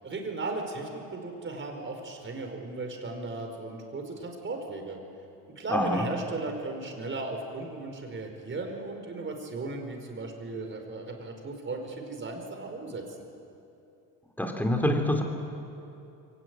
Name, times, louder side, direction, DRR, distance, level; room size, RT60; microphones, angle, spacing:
voice 1, 0.0-5.0 5.6-13.0, right 3 dB, 30° right, 3 dB, 4.9 m, -36 dB
voice 2, 5.7-6.0 14.4-15.2, left 1 dB, 5° left, 3 dB, 3.5 m, -26 dB
23.0 x 18.0 x 9.4 m, 2.7 s
supercardioid pair, 90°, 39 cm